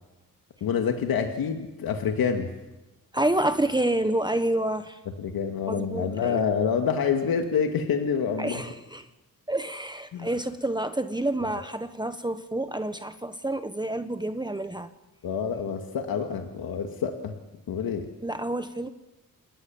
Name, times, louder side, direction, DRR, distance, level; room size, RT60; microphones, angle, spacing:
voice 1, 0.6-2.5 5.2-8.6 10.1-10.3 15.2-17.3 17.7-18.1, left 6 dB, 85° left, 4 dB, 2.2 m, -27 dB
voice 2, 3.1-5.0 5.7-6.4 8.4-9.1 9.5-14.9 18.2-18.9, right 1 dB, 10° right, 9 dB, 1.3 m, -28 dB
28.0 x 20.0 x 7.3 m, 1.0 s
cardioid pair, 80°, 35 cm